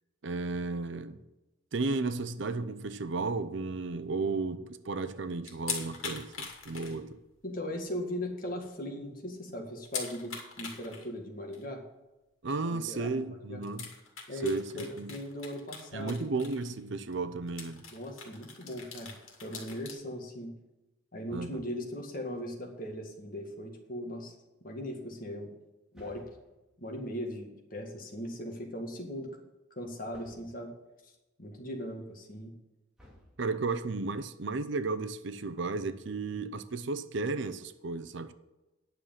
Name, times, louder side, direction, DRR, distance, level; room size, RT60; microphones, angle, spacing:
voice 1, 0.2-1.2 1.7-7.2 12.4-13.9 14.4-15.1 15.9-17.8 21.3-21.6 33.4-38.3, right 3 dB, 60° right, 0.6 m, -34 dB
sound 1, 5.4-7.4 7.7-7.8 8.3-8.4 8.6-8.7 9.9-11.1 11.5-11.7 13.0-13.1 13.6-16.8 17.1-17.2 17.5-19.9, left 5 dB, 85° left, 2.4 m, -41 dB
voice 2, 7.4-11.8 12.7-13.2 13.5-13.6 14.3-16.2 17.9-19.1 19.4-20.5 21.1-24.3 24.6-25.5 25.9-26.3 26.8-29.3 29.7-30.7 31.0-31.1 31.4-32.5, equal, 45° left, 1.9 m, -39 dB
sound 2, 22.7-23.4 25.9-26.8 30.1-30.7 33.0-33.8, equal, 5° right, 2.2 m, -59 dB
9.8 x 6.6 x 7.4 m
head